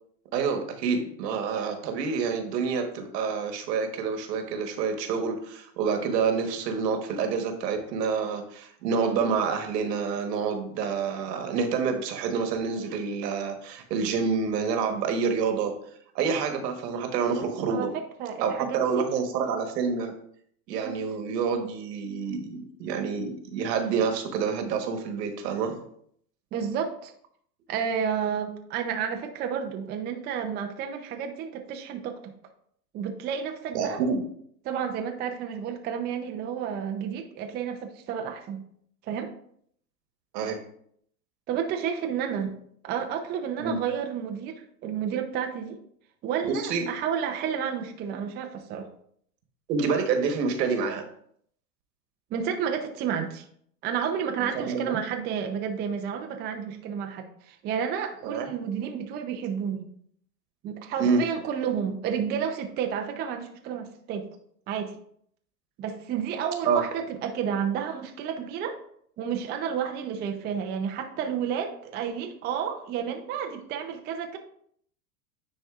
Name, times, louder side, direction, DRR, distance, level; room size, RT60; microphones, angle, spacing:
voice 1, 0.3-15.7 16.1-17.9 18.4-20.1 20.7-25.8 33.7-34.2 40.3-40.6 43.6-43.8 46.4-46.8 49.7-51.0 54.4-55.0 58.2-58.5 61.0-61.2 66.6-66.8, right 5 dB, 80° right, 5 dB, 1.3 m, -28 dB
voice 2, 17.7-19.1 20.7-21.0 26.5-27.1 27.7-32.3 32.9-34.0 34.6-38.6 39.0-39.3 41.5-42.6 42.8-45.8 46.2-48.9 52.3-53.4 53.8-59.8 60.6-64.3 64.7-65.0 65.8-68.8 69.2-74.4, right 7 dB, 20° right, 4 dB, 0.4 m, -31 dB
9.7 x 4.2 x 2.4 m, 0.66 s
supercardioid pair, 125°, 48 cm